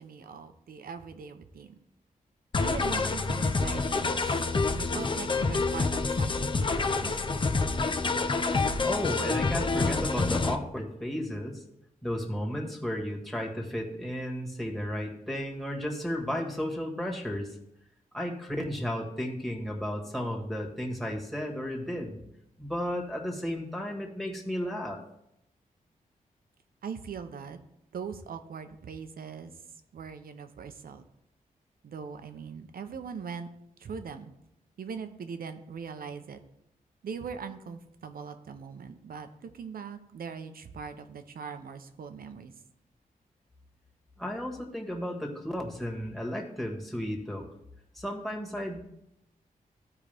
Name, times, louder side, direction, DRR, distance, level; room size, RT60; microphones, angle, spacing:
voice 1, 0.0-1.8 2.6-4.5 4.7-7.5 26.8-27.6 27.9-29.5 29.9-31.0 31.8-33.5 33.8-34.3 34.8-36.4 37.0-42.5, right 6 dB, 80° right, 8 dB, 0.8 m, -41 dB
sound 1, 2.5-10.6, left 3 dB, 35° left, 0.6 m, -27 dB
voice 2, 8.8-11.6 12.0-17.6 18.1-22.2 22.6-25.0 44.2-47.5 47.9-48.8, equal, ahead, 1 dB, 1.8 m, -33 dB
14.5 x 4.9 x 3.5 m, 0.80 s
wide cardioid pair, 115°, 15 cm